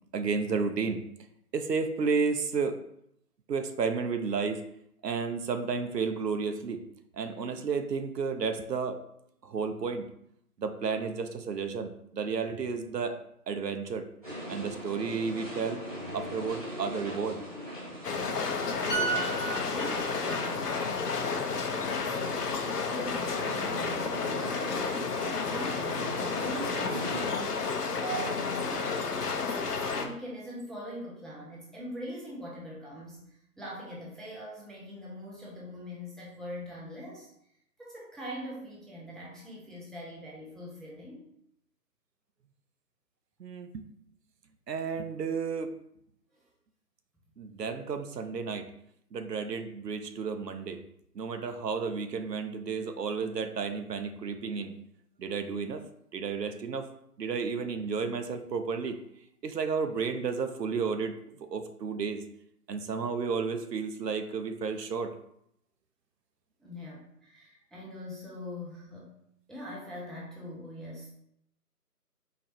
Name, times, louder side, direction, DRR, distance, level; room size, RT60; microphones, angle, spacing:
voice 1, 0.1-1.0 1.5-2.8 3.5-4.6 5.0-6.8 7.1-9.0 9.4-10.1 10.6-13.2 13.5-14.1 14.5-15.8 16.1-17.4 43.4-43.8 44.7-45.7 47.4-48.7 49.1-50.8 51.1-54.7 55.2-55.8 56.1-56.9 57.2-59.0 59.4-62.2 62.7-65.1, right 5 dB, 90° right, 8 dB, 0.6 m, -32 dB
sound 1, 14.2-27.3, equal, 25° right, 1.1 m, -41 dB
sound 2, 18.0-30.1, left 5 dB, 75° left, 0.7 m, -31 dB
sound 3, 18.9-22.5 22.8-23.1, right 6 dB, 35° left, 0.8 m, -36 dB
voice 2, 19.6-28.9 29.4-37.3 37.8-41.2 46.3-46.5 66.6-69.2 69.5-71.1, equal, ahead, -5 dB, 0.4 m, -42 dB
4.2 x 3.0 x 2.5 m, 0.74 s
figure-of-eight pair, 165°, 48 cm